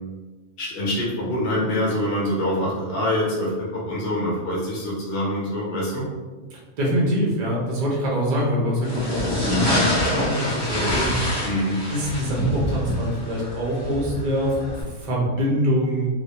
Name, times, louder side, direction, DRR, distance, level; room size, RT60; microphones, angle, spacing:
voice 1, 0.6-6.1 11.4-11.8, left 1 dB, 60° left, -5 dB, 0.8 m, -25 dB
voice 2, 6.5-11.2 11.9-16.2, equal, 60° right, -3 dB, 0.4 m, -24 dB
sound 1, 8.8-14.8, left 1 dB, 30° left, 0.5 m, -26 dB
2.2 x 2.1 x 2.7 m, 1.3 s
omnidirectional pair, 1.3 m